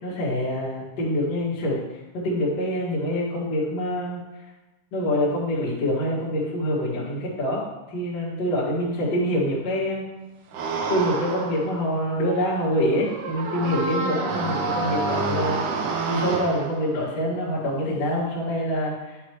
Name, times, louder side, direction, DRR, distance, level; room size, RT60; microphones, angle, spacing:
voice 1, 0.0-1.8 2.1-4.2 4.9-10.0 10.9-19.2, equal, 55° left, -8 dB, 2.7 m, -25 dB
sound 1, 10.5-16.9, right 4 dB, 75° right, 2.1 m, -29 dB
10.0 x 6.1 x 3.0 m, 1.1 s
omnidirectional pair, 3.7 m